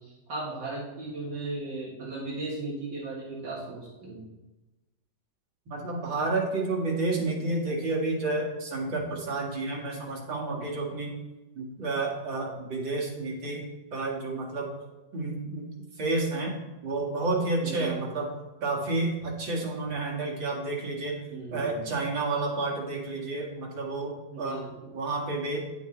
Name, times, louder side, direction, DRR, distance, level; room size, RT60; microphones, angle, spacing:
voice 1, 0.0-4.3 17.6-18.1 21.3-21.9 24.3-25.0, right 2 dB, 70° right, -5 dB, 2.2 m, -37 dB
voice 2, 5.7-11.2 11.6-13.6 13.9-14.7 15.1-15.7 16.0-16.6 16.8-18.3 18.6-21.2 21.5-24.7 24.9-25.8, right 2 dB, 90° right, -2 dB, 2.6 m, -30 dB
10.5 x 7.8 x 3.3 m, 1.1 s
omnidirectional pair, 2.0 m